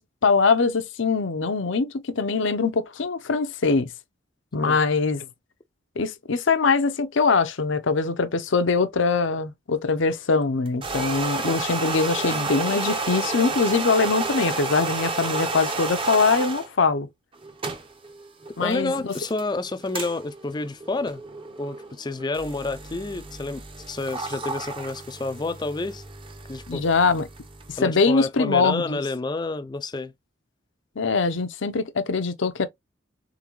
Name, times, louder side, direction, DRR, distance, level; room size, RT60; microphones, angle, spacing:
voice 1, 0.0-3.9 4.5-5.3 6.0-17.1 18.6-19.1 26.7-27.3 27.7-29.0 31.0-32.7, left 4 dB, 65° left, 0.6 m, -22 dB
sound 1, 10.7-16.7 17.3-27.8, right 3 dB, 25° right, 0.7 m, -31 dB
voice 2, 18.6-21.2 21.6-23.6 23.9-26.0 26.5-26.8 27.8-30.1, left 3 dB, 20° left, 0.4 m, -29 dB
3.8 x 3.6 x 3.0 m
head